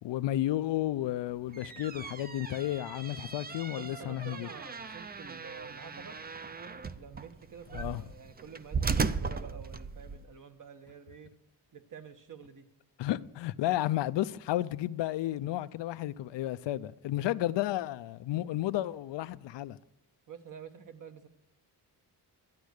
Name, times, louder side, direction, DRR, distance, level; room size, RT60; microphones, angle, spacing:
voice 1, 0.0-4.5 7.7-8.0 13.0-19.8, left 14 dB, 80° left, 0.6 m, -32 dB
sound 1, 1.4-10.2, right 5 dB, 20° right, 0.5 m, -37 dB
voice 2, 3.8-6.2 7.0-11.3 11.7-12.6 20.3-21.3, right 6 dB, 45° right, 1.2 m, -49 dB
12.0 x 9.5 x 6.5 m
cardioid pair, 115°, 42 cm